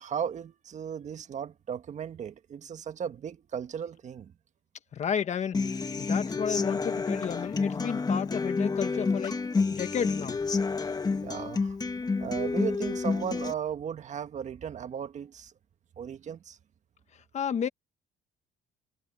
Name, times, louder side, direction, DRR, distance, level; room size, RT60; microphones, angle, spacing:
voice 1, 0.0-4.3 11.2-11.8 12.2-15.5 16.0-16.6, right 8 dB, 45° right, 1.6 m, -36 dB
voice 2, 4.9-9.4 9.7-10.4 17.1-17.7, left 7 dB, 45° left, 1.5 m, -32 dB
Human voice / Acoustic guitar, 5.5-13.5, left 4 dB, 25° left, 1.5 m, -29 dB
cardioid pair, 110°, 17 cm